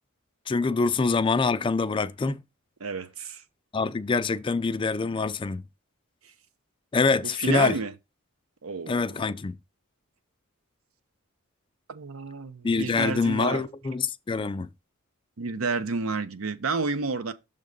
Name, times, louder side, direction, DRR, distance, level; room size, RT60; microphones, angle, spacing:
voice 1, 0.5-2.4 3.7-5.6 6.9-7.7 8.9-9.6 12.6-14.7, left 4 dB, 25° left, 0.3 m, -25 dB
voice 2, 2.8-3.4 7.2-7.9 8.6-9.2 11.9-13.6 15.4-17.3, right 4 dB, 80° right, 0.7 m, -30 dB
6.5 x 3.7 x 5.2 m
head